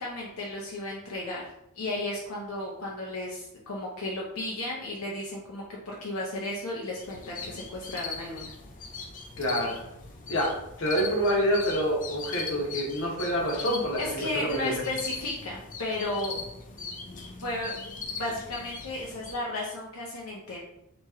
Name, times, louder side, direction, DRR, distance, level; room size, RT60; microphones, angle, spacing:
voice 1, 0.0-8.5 14.0-16.4 17.4-17.8 18.2-20.6, left 2 dB, 85° left, -4 dB, 0.6 m, -34 dB
sound 1, 7.0-19.3, left 4 dB, 40° left, 0.5 m, -40 dB
voice 2, 9.4-9.8 10.3-10.5 10.8-14.8, equal, 65° left, -1 dB, 1.0 m, -27 dB
3.0 x 2.9 x 3.5 m, 0.82 s
head